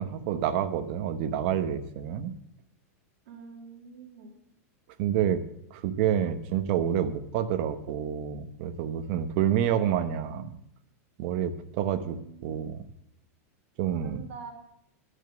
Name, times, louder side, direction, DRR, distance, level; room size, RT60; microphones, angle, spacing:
voice 1, 0.0-2.3 5.0-5.4 5.7-10.5 11.2-12.8 13.8-14.2, right 9 dB, 40° right, 10 dB, 0.9 m, -28 dB
voice 2, 3.3-4.4 11.9-12.7 14.0-14.5, right 5 dB, 55° right, 1 dB, 2.6 m, -46 dB
12.5 x 6.4 x 7.7 m, 0.74 s
supercardioid pair, 175°, 8 cm